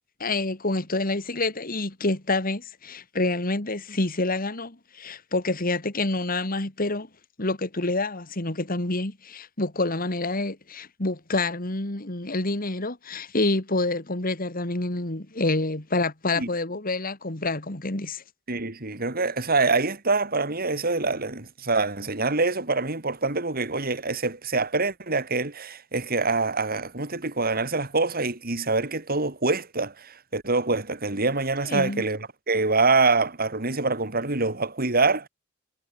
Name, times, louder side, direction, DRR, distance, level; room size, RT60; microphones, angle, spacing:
voice 1, 0.2-7.1 7.4-18.2 31.7-32.0, left 2 dB, 45° left, 2.6 m, -27 dB
voice 2, 18.5-35.3, right 3 dB, 50° right, 3.5 m, -25 dB
head